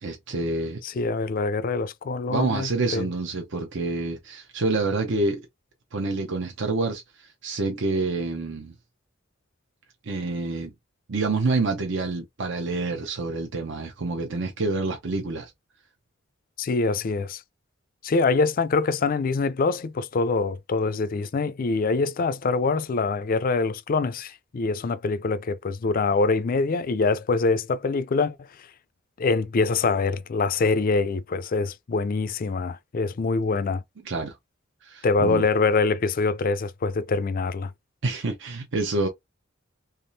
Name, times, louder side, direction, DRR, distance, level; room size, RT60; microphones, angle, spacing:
voice 1, 0.0-0.8 2.3-5.4 5.9-8.7 10.1-10.7 11.1-15.5 34.0-34.4 34.8-35.5 38.0-39.1, right 3 dB, 65° right, 0.7 m, -27 dB
voice 2, 0.8-3.1 16.6-17.4 18.0-28.4 29.2-33.8 35.0-37.7, left 4 dB, 45° left, 0.4 m, -24 dB
3.5 x 3.1 x 2.7 m
head